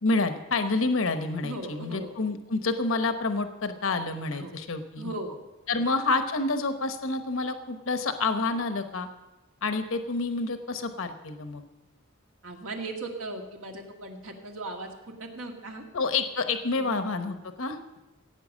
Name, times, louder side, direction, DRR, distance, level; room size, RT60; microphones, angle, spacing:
voice 1, 0.0-5.1 5.7-9.1 9.6-11.6 15.9-17.8, left 3 dB, 70° left, 8 dB, 1.0 m, -28 dB
voice 2, 1.4-2.1 4.3-4.5 5.0-5.4 5.7-5.9 12.4-15.8 16.7-17.0, right 2 dB, 70° right, 1 dB, 2.2 m, -38 dB
16.0 x 9.0 x 6.3 m, 1.0 s
head